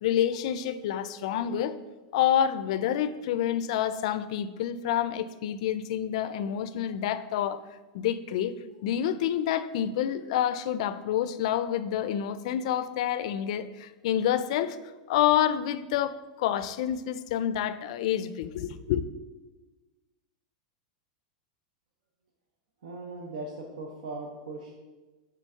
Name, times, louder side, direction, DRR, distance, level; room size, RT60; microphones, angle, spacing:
voice 1, 0.0-1.8 2.1-7.6 7.9-8.5 8.8-14.8 15.1-19.0, left 10 dB, 55° left, 13 dB, 0.3 m, -28 dB
voice 2, 22.8-24.7, right 2 dB, 80° right, 0 dB, 0.9 m, -39 dB
6.1 x 3.9 x 5.6 m, 1.2 s
supercardioid pair, 165°, 4 cm